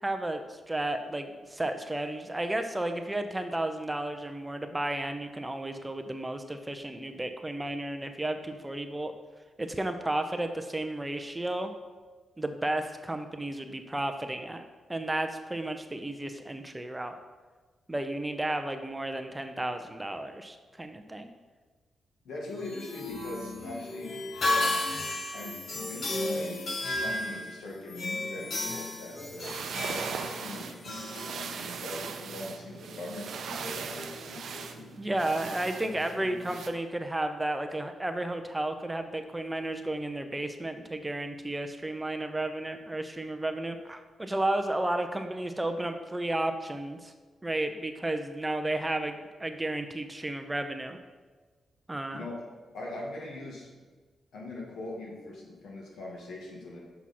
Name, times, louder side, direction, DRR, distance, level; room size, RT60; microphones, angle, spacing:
voice 1, 0.0-9.1 9.6-11.7 12.4-14.6 14.9-17.1 17.9-21.3 35.0-47.1 47.4-51.0 51.9-52.2, right 1 dB, 15° right, 6 dB, 0.5 m, -33 dB
voice 2, 22.2-24.8 25.3-26.6 26.9-30.8 31.2-34.9 35.8-36.5 52.1-52.3 52.7-53.7 54.3-56.8, left 2 dB, 90° left, -2 dB, 1.7 m, -41 dB
sound 1, 22.5-32.0, left 1 dB, 55° left, 0.9 m, -34 dB
sound 2, 29.2-36.7, right 6 dB, 75° right, 0.5 m, -39 dB
6.2 x 5.7 x 4.2 m, 1.4 s
cardioid pair, 95°, 0 cm